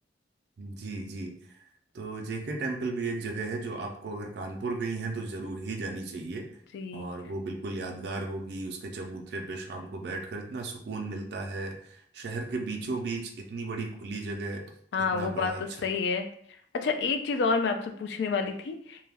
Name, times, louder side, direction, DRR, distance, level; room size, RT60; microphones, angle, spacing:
voice 1, 0.6-1.6 1.9-6.5 6.9-14.6 15.0-15.9, right 3 dB, 60° right, 2 dB, 0.4 m, -35 dB
voice 2, 6.7-7.1 14.9-16.3 16.7-19.1, left 4 dB, 65° left, 6 dB, 0.3 m, -29 dB
2.3 x 2.1 x 3.3 m, 0.65 s
head